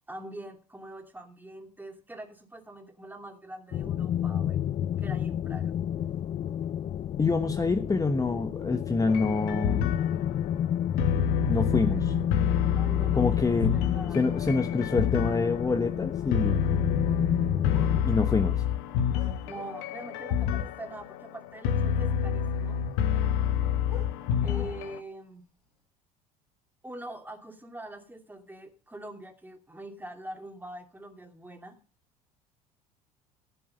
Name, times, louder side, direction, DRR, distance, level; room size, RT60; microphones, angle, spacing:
voice 1, 0.1-4.6 5.0-5.7 12.7-14.2 19.5-22.8 24.4-25.5 26.8-31.8, right 1 dB, 10° right, 2.6 m, -44 dB
sound 1, 3.7-18.0, left 10 dB, 35° left, 0.5 m, -30 dB
voice 2, 7.2-9.8 11.5-12.1 13.1-13.7 14.1-16.6 18.0-18.6, left 3 dB, 20° left, 1.2 m, -26 dB
sound 2, 9.1-25.0, left 8 dB, 65° left, 1.1 m, -28 dB
sound 3, 15.8-15.9 17.7-20.0 20.2-20.4 21.5-21.6 21.8-22.1 23.3-25.1 25.7-25.8, left 4 dB, 90° left, 5.2 m, -49 dB
15.0 x 7.7 x 5.4 m
figure-of-eight pair, 65°, 19 cm